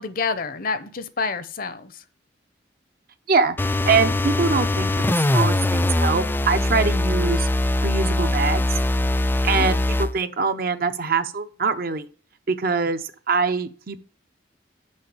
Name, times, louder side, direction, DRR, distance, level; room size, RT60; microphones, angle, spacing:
voice 1, 0.0-1.9 9.5-9.7, left 4 dB, 50° left, 12 dB, 0.8 m, -28 dB
sound 1, 3.6-10.1, left 2 dB, 10° left, 0.3 m, -22 dB
voice 2, 3.9-7.5 7.8-8.7 9.4-12.1 12.5-14.0, right 4 dB, 55° right, 9 dB, 0.7 m, -23 dB
6.5 x 5.3 x 7.0 m, 0.42 s
head